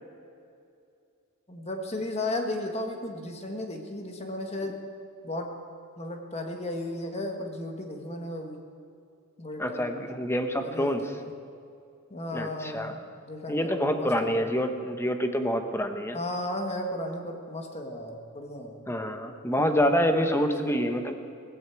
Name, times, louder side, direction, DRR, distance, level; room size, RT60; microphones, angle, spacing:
voice 1, 1.5-4.8 5.2-5.5 6.0-8.6 9.4-10.1 10.6-11.3 12.1-14.6 16.1-18.8 20.1-20.3 20.6-20.9, left 1 dB, 30° left, 3 dB, 1.6 m, -35 dB
voice 2, 9.6-11.0 12.3-13.0 13.5-16.2 18.9-21.1, equal, 10° left, 6 dB, 0.9 m, -27 dB
17.5 x 15.5 x 4.7 m, 2.5 s
head